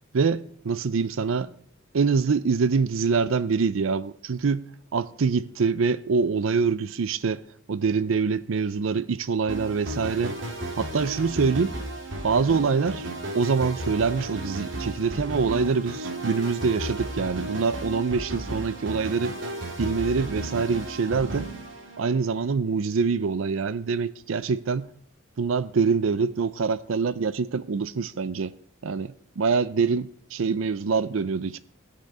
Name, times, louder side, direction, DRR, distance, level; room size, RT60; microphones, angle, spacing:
voice 1, 0.1-1.5 1.9-4.6 4.9-7.4 7.7-10.3 10.8-11.8 12.2-13.1 13.3-19.3 19.8-21.5 22.0-24.9 25.4-28.5 28.8-31.6, right 5 dB, 80° right, 0.5 m, -25 dB
sound 1, 9.5-22.4, right 1 dB, 60° right, 2.3 m, -34 dB
16.5 x 6.7 x 4.9 m
head